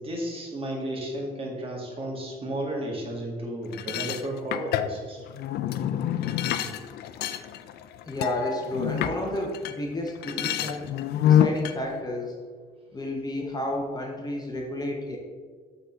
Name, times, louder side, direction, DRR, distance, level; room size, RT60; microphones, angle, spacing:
voice 1, 0.0-5.3, right 1 dB, 35° right, -2 dB, 2.0 m, -33 dB
sound 1, 3.7-9.8 10.1-11.8, left 10 dB, 70° left, 0.5 m, -27 dB
voice 2, 8.0-10.9 11.2-12.4 12.9-15.2, left 1 dB, 25° left, 1 dB, 0.9 m, -31 dB
8.1 x 4.0 x 4.6 m, 1.5 s
cardioid pair, 110°, 17 cm